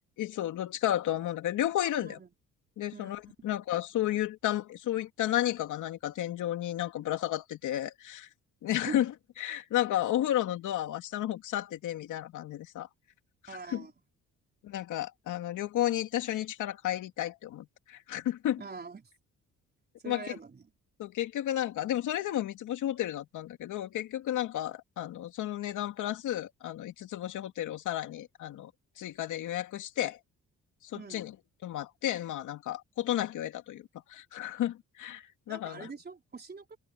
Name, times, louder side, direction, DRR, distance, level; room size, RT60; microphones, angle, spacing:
voice 1, 0.2-2.2 2.8-8.3 8.6-9.1 9.4-12.9 13.7-13.8 14.6-18.6 20.1-20.3 21.0-28.7 29.0-30.2 30.8-31.3 31.6-35.9, left 12 dB, 80° left, 2.7 m, -32 dB
voice 2, 2.0-2.3 2.9-3.1 8.7-9.0 13.5-13.9 18.6-19.1 20.0-20.7 30.9-31.2 35.5-36.8, right 5 dB, 35° right, 4.3 m, -43 dB
cardioid pair, 90°, 30 cm